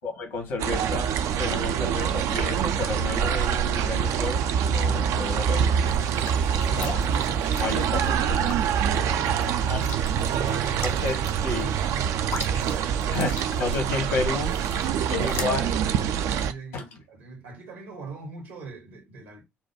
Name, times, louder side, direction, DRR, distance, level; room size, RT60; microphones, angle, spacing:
voice 1, 0.0-1.1 1.4-5.8 6.5-7.2 7.6-8.6 9.7-9.9 10.8-11.2 11.4-11.7 13.1-14.6 15.1-15.7 16.7-16.8, left 3 dB, 70° left, 1.5 m, -31 dB
sound 1, 0.6-16.5, right 8 dB, 60° right, 0.4 m, -25 dB
sound 2, 5.9-15.4, left 5 dB, 55° left, 0.8 m, -41 dB
voice 2, 6.7-7.9 8.9-12.8 15.2-19.4, right 5 dB, 75° right, 1.2 m, -40 dB
4.2 x 2.2 x 4.5 m
figure-of-eight pair, 45°, 6 cm